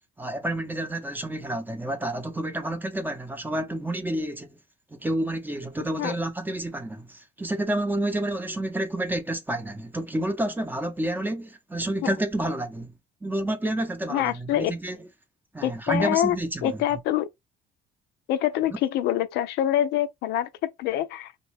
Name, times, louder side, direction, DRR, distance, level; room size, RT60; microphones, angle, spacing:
voice 1, 0.2-4.6 4.9-12.9 13.2-15.0 15.5-16.8, right 1 dB, 10° right, 0.6 m, -29 dB
voice 2, 14.1-14.7 15.6-16.4 16.6-17.3 18.3-21.5, left 12 dB, 80° left, 0.4 m, -25 dB
3.0 x 2.2 x 3.3 m
cardioid pair, 110°, 17 cm